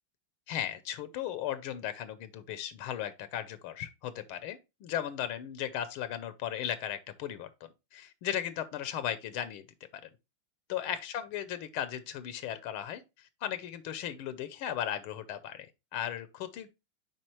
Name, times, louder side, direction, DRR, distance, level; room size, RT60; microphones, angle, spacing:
voice 1, 0.5-9.7 10.0-10.1 10.7-16.7, left 10 dB, 90° left, 1.6 m, -36 dB
7.5 x 4.9 x 3.0 m
omnidirectional pair, 2.3 m